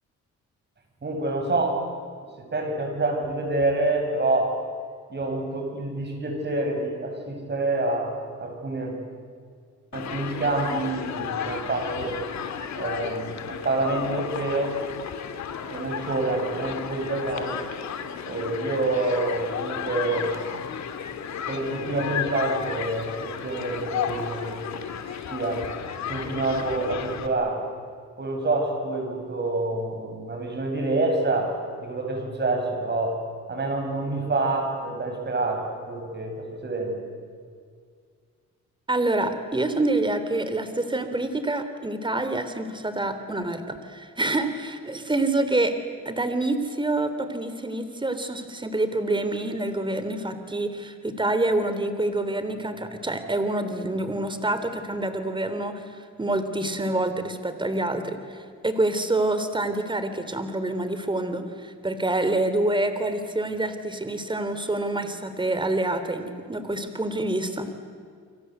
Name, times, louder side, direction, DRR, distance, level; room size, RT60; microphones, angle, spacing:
voice 1, 1.0-1.8 2.4-4.6 5.1-9.0 9.9-12.2 12.8-14.8 15.7-17.6 18.3-20.3 21.5-24.8 25.3-25.7 26.1-27.6 28.2-31.6 31.8-33.2 33.5-37.0, right 2 dB, 35° right, 3 dB, 7.8 m, -27 dB
Human group actions, 9.9-27.3, left 8 dB, 65° left, 2.6 m, -33 dB
voice 2, 38.9-45.7 46.0-67.7, right 2 dB, 15° right, 9 dB, 3.4 m, -27 dB
29.5 x 25.0 x 8.2 m, 2.1 s
cardioid pair, 90°, 30 cm